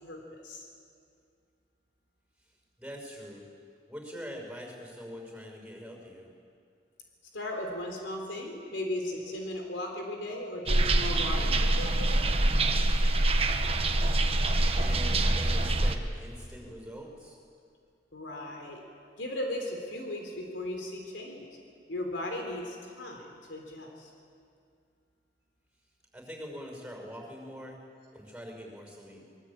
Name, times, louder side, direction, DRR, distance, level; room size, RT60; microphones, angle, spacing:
voice 1, 0.0-0.7 7.3-12.3 18.1-18.8 19.2-21.5 21.9-24.1, left 1 dB, 85° left, 2 dB, 3.7 m, -37 dB
voice 2, 2.8-3.5 3.9-6.3 14.7-17.4 26.1-27.8 28.1-29.2, equal, 5° right, 1 dB, 6.0 m, -43 dB
sound 1, 10.7-16.0, right 2 dB, 30° right, 1.2 m, -25 dB
25.0 x 22.0 x 8.8 m, 2.3 s
head